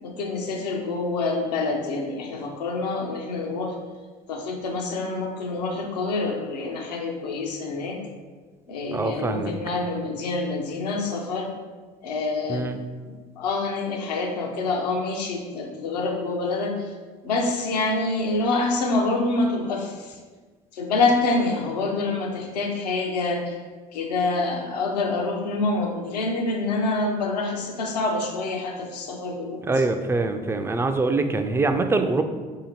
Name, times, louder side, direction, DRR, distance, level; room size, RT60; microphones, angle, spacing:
voice 1, 0.0-3.7 4.3-8.0 8.7-11.5 12.0-12.7 13.0-16.7 17.2-20.1 20.7-23.5 23.9-29.6, left 3 dB, 75° left, 2 dB, 0.6 m, -26 dB
voice 2, 8.9-9.5 12.5-12.8 29.6-32.2, right 3 dB, 10° right, 7 dB, 0.3 m, -24 dB
4.8 x 2.8 x 2.9 m, 1.4 s
figure-of-eight pair, 55°, 21 cm